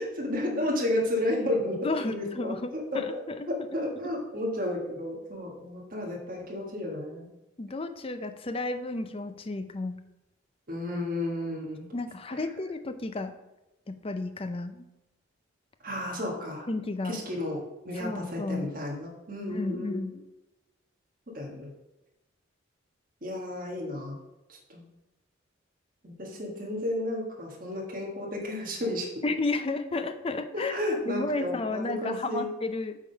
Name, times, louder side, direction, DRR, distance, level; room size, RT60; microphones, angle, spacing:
voice 1, 0.0-1.8 2.1-3.0 3.7-7.3 10.7-11.9 12.3-12.4 15.8-16.7 17.0-20.0 21.3-21.7 23.2-24.2 24.5-24.9 26.0-29.1 30.5-32.5, left 1 dB, 40° right, -2 dB, 1.5 m, -32 dB
voice 2, 1.8-3.5 7.6-10.0 11.9-13.3 13.9-14.8 16.7-17.2 18.0-18.7 19.5-20.2 29.2-30.7 31.1-33.0, left 2 dB, 25° left, 9 dB, 0.5 m, -32 dB
8.4 x 3.6 x 5.5 m, 0.97 s
head